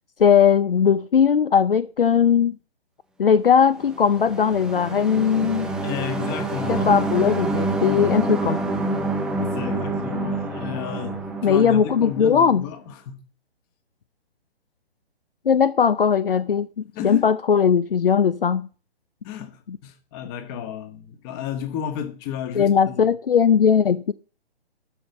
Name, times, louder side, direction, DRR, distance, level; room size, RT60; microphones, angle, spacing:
voice 1, 0.2-2.6 3.2-5.7 6.7-8.6 11.4-12.7 15.5-16.7 17.0-18.7 19.7-19.8 22.6-24.1, left 7 dB, 60° left, 0.7 m, -19 dB
sound 1, 3.8-12.5, right 2 dB, ahead, 1.0 m, -27 dB
voice 2, 5.8-7.0 9.4-13.2 16.9-17.3 19.2-23.1, left 9 dB, 20° left, 1.5 m, -32 dB
13.0 x 5.5 x 7.2 m
figure-of-eight pair, 130°, 32 cm